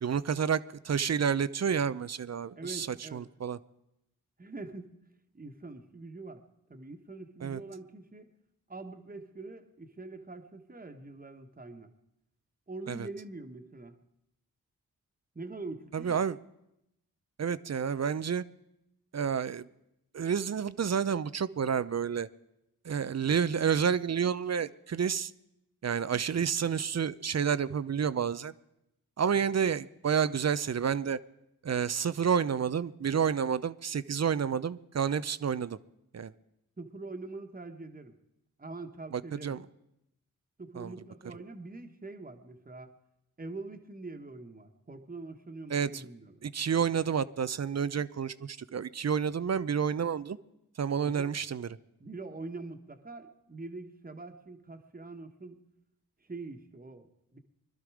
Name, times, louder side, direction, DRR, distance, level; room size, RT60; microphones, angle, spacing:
voice 1, 0.0-3.6 7.4-7.6 12.9-13.1 15.9-16.4 17.4-18.4 19.1-19.7 20.1-22.3 22.8-25.3 25.8-28.5 29.2-31.2 31.6-35.8 36.1-36.3 39.1-39.7 40.8-40.9 45.7-46.1 46.4-50.4 50.8-51.7, right 7 dB, 45° right, 16 dB, 0.7 m, -30 dB
voice 2, 2.6-3.3 4.4-5.0 5.3-6.4 6.7-8.3 8.7-11.9 12.7-14.0 15.3-16.2 36.8-38.2 38.6-39.6 40.6-42.9 43.4-46.3 51.0-51.3 52.0-55.6 56.2-57.4, right 3 dB, 25° right, 5 dB, 1.5 m, -44 dB
21.5 x 12.0 x 5.0 m, 0.85 s
supercardioid pair, 40°, 36 cm